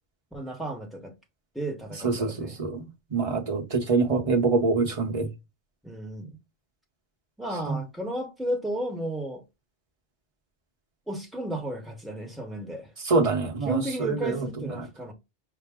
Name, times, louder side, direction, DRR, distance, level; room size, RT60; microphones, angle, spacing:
voice 1, 0.3-1.1 1.5-2.6 5.8-6.4 7.4-9.4 11.1-12.9 13.6-15.1, right 1 dB, ahead, 1.0 m, -33 dB
voice 2, 2.0-5.3 7.7-7.8 13.0-14.7, right 4 dB, 30° right, 0.9 m, -25 dB
5.9 x 2.1 x 3.5 m
omnidirectional pair, 1.2 m